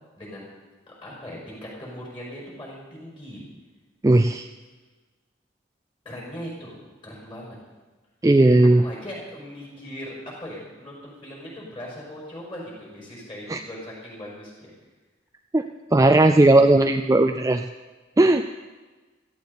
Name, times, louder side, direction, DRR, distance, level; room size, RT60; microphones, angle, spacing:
voice 1, 0.2-0.5 0.9-3.4 6.0-7.6 8.8-14.7, equal, 25° left, -4 dB, 5.5 m, -39 dB
voice 2, 4.0-4.5 8.2-8.8 13.5-13.6 15.5-15.6 15.9-17.6 18.2-18.4, right 2 dB, 15° right, 7 dB, 0.3 m, -16 dB
17.0 x 14.5 x 4.2 m, 1.3 s
head